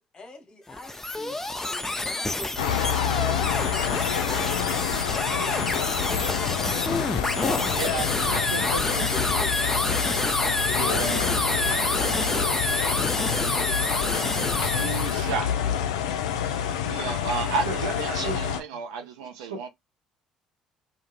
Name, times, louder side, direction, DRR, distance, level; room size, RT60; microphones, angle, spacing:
voice 1, 0.0-1.4 1.7-4.9 5.4-8.0 8.6-12.1 12.8-16.0, left 3 dB, 30° left, 1.0 m, -43 dB
sound 1, 0.7-15.3, left 2 dB, 15° left, 0.5 m, -28 dB
sound 2, 2.6-18.6, left 9 dB, 75° left, 0.3 m, -28 dB
voice 2, 7.7-9.0 10.4-11.3 17.6-18.5 19.4-19.6, right 2 dB, 90° right, 0.8 m, -34 dB
voice 3, 11.2-13.2 14.7-15.5 16.8-19.7, right 5 dB, 70° right, 0.4 m, -33 dB
2.3 x 2.1 x 3.0 m
figure-of-eight pair, 55°, 3 cm